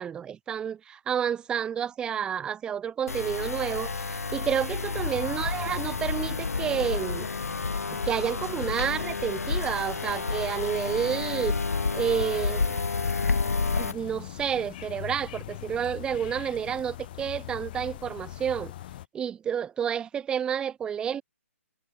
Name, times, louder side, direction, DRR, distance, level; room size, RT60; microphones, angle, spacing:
voice 1, 0.0-7.3 8.1-11.6 11.9-12.8 13.8-18.7 19.1-21.2, right 8 dB, 10° right, 1.0 m, -30 dB
sound 1, 3.1-13.9, left 4 dB, 85° left, 1.5 m, -30 dB
sound 2, 4.9-19.1, left 14 dB, 40° left, 1.7 m, -42 dB
hypercardioid pair, 145°, 8 cm